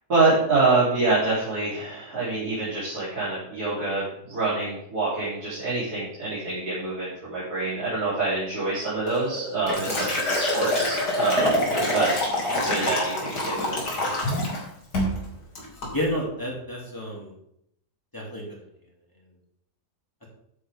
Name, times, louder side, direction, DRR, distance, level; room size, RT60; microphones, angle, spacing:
voice 1, 0.1-11.6 11.9-12.1 12.7-13.8, right 3 dB, 65° right, -10 dB, 4.2 m, -26 dB
Liquid, 9.1-14.6 14.9-15.2 15.6-15.9, left 1 dB, 75° left, 3.3 m, -26 dB
voice 2, 15.9-17.3 18.1-18.6 20.2-20.3, equal, 10° left, -3 dB, 3.0 m, -30 dB
12.0 x 8.5 x 3.6 m, 0.73 s
omnidirectional pair, 1.8 m